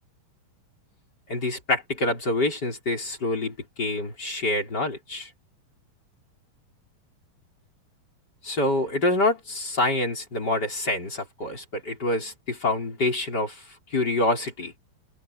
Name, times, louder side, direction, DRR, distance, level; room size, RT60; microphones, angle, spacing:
voice 1, 1.3-5.3 8.4-14.7, left 2 dB, 25° left, 5.0 m, -26 dB
omnidirectional pair, 4.2 m